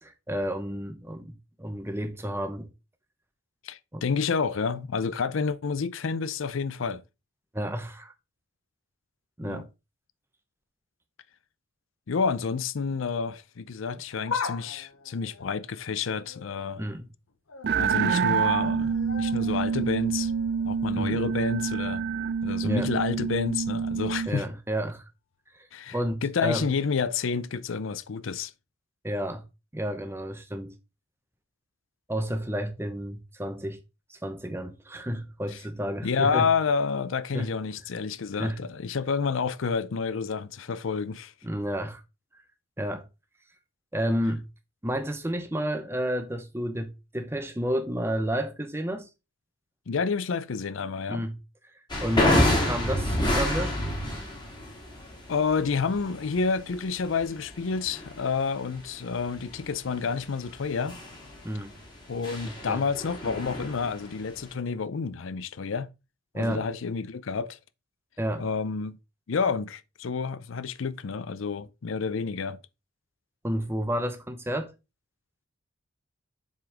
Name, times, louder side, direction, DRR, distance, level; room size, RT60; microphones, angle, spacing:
voice 1, 0.0-2.7 3.9-4.0 7.5-8.1 9.4-9.7 16.8-17.1 21.0-21.2 22.6-22.9 24.3-25.0 25.9-26.7 29.0-29.4 29.7-30.8 32.1-33.8 34.1-36.5 37.3-37.5 38.4-38.6 41.4-42.0 42.8-43.1 43.9-44.4 44.8-49.1 51.1-51.4 52.0-53.7 61.4-61.8 62.4-62.8 66.3-66.7 68.2-68.5 73.4-74.7, equal, 10° right, 0.9 m, -31 dB
voice 2, 3.6-7.0 9.4-9.6 12.1-16.8 17.8-20.3 20.7-22.0 22.4-24.5 25.7-28.5 35.5-35.6 36.0-41.3 49.9-51.2 55.3-61.0 62.1-65.9 66.3-67.6 68.4-69.0 69.3-72.6, left 5 dB, 70° left, 0.5 m, -29 dB
sound 1, 14.0-16.9 17.3-17.7 18.0-22.0 22.3-22.4 23.4-23.5, left 5 dB, 85° left, 0.9 m, -40 dB
sound 2, 17.6-24.3, right 6 dB, 50° right, 0.3 m, -27 dB
sound 3, 51.9-64.5, left 1 dB, 20° left, 2.2 m, -29 dB
7.2 x 3.9 x 4.9 m
head